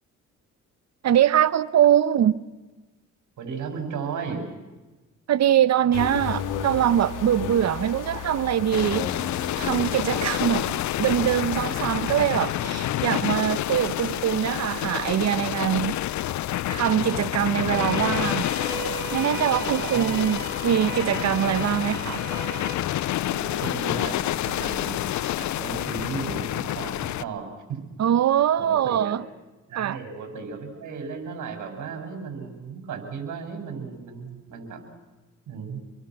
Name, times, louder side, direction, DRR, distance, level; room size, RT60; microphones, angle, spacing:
voice 1, 1.0-2.4 5.3-9.1 9.5-10.7 11.0-16.0 16.7-18.5 19.1-22.3 28.0-29.2 29.7-30.0, right 10 dB, 60° right, 1.1 m, -23 dB
voice 2, 3.4-4.4 12.5-13.0 19.5-20.2 23.3-25.0 25.4-27.5 28.6-29.2 29.7-34.8 35.5-35.8, right 5 dB, 75° right, 6.4 m, -35 dB
sound 1, 5.9-12.2, left 7 dB, 90° left, 2.5 m, -34 dB
sound 2, 8.7-27.2, left 13 dB, 70° left, 0.7 m, -28 dB
sound 3, 17.7-22.7, right 6 dB, 35° right, 5.1 m, -36 dB
28.5 x 22.5 x 6.2 m
cardioid pair, 90°, 30 cm